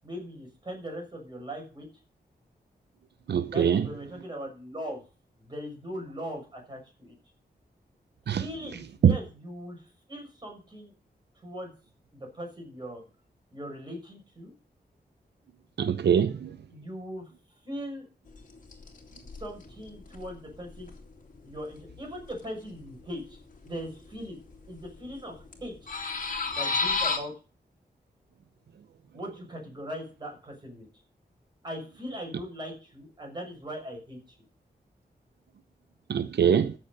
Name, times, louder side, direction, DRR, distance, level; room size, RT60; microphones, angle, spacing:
voice 1, 0.0-1.9 3.5-5.0 5.4-7.1 8.3-9.8 10.1-10.9 11.4-11.7 12.1-13.0 13.5-14.5 16.7-17.3 17.6-18.0 19.4-20.9 21.4-23.4 23.7-24.4 24.7-25.9 26.5-27.3 29.1-30.8 31.6-34.2, equal, 25° right, 6.3 m, -39 dB
voice 2, 3.3-3.9 8.3-8.5 9.0-9.1 15.8-16.6 36.1-36.7, right 8 dB, 90° right, 0.7 m, -23 dB
sound 1, 18.3-18.4 18.7-22.5 22.9-23.0 23.2-24.2 24.5-25.2 25.4-27.2, left 4 dB, 50° left, 2.4 m, -31 dB
14.0 x 7.0 x 6.7 m
wide cardioid pair, 175°, 17 cm